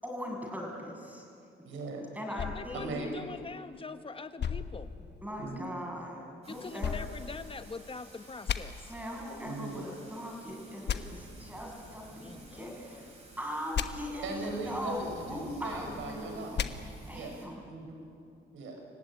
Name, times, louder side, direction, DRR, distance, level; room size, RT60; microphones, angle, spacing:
voice 1, 0.0-1.3 2.1-3.0 5.2-6.9 8.9-13.1 13.4-16.6 17.1-17.6, equal, 10° right, 0 dB, 7.2 m, -40 dB
voice 2, 1.6-2.1 2.7-3.2 5.4-5.9 9.4-9.9 14.2-16.6 17.1-17.4 17.6-18.1 18.5-18.8, right 3 dB, 80° right, 3 dB, 6.0 m, -39 dB
voice 3, 2.3-4.9 6.5-8.9 12.2-13.2, left 4 dB, 25° left, 10 dB, 1.3 m, -44 dB
sound 1, 2.4-3.8 4.4-5.6 6.8-8.0 8.5-8.6 10.9-11.0 13.7-13.9 16.5-16.7, left 8 dB, 60° left, 1.3 m, -35 dB
Thunder / Rain, 6.4-17.5, right 2 dB, 30° right, 6.5 m, -52 dB
27.5 x 16.0 x 10.0 m, 2.5 s
cardioid pair, 90°, 20 cm